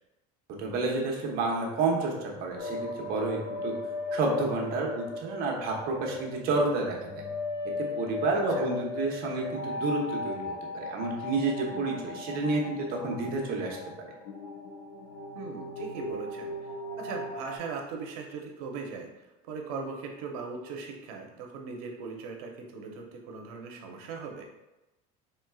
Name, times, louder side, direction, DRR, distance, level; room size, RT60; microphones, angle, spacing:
voice 1, 0.6-3.7 4.1-7.2 8.0-14.1, right 3 dB, 55° right, -1 dB, 1.0 m, -30 dB
sound 1, 2.6-17.6, left 2 dB, 65° left, 1.0 m, -37 dB
voice 2, 8.3-8.7 15.3-16.5 17.0-19.1 19.5-24.5, right 4 dB, 80° right, 2 dB, 0.8 m, -39 dB
4.3 x 3.3 x 2.3 m, 0.99 s
supercardioid pair, 125°, 19 cm